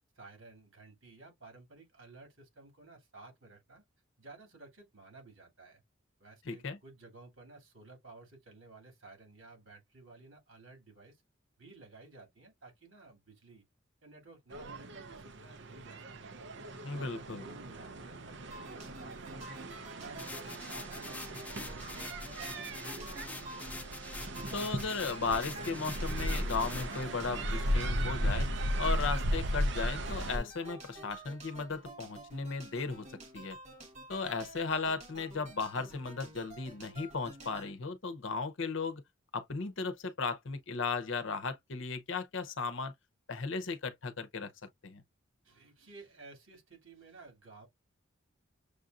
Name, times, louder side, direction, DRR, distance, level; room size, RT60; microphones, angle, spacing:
voice 1, 0.1-3.8 4.2-5.8 6.2-11.2 11.6-13.6 14.0-16.4 16.9-23.3 45.4-47.7, right 3 dB, 80° right, 2.6 m, -54 dB
voice 2, 6.4-6.8 16.8-17.4 24.5-28.5 28.8-33.6 34.1-39.0 39.3-42.9 43.3-44.5 44.8-45.0, left 4 dB, 65° left, 0.8 m, -36 dB
sound 1, 14.5-30.4, equal, 60° right, 0.7 m, -36 dB
sound 2, 18.5-37.7, right 1 dB, 35° right, 1.5 m, -50 dB
sound 3, 20.2-27.0, left 2 dB, 10° left, 0.3 m, -46 dB
6.5 x 2.6 x 2.4 m
head